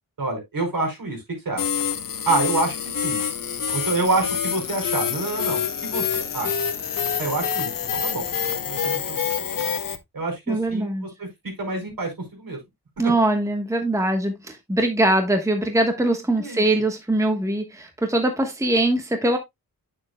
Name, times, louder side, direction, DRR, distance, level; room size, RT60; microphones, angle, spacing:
voice 1, 0.2-1.6 2.2-2.8 3.0-3.2 3.7-6.5 7.2-9.2 9.5-9.7 10.1-12.6 13.0-13.1 16.4-16.6, right 3 dB, 65° right, 4.7 m, -27 dB
sound 1, 1.6-10.0, left 7 dB, 65° left, 1.1 m, -26 dB
voice 2, 10.5-11.1 13.0-19.4, right 1 dB, 10° right, 1.2 m, -22 dB
9.6 x 6.9 x 2.2 m
wide cardioid pair, 140°, 36 cm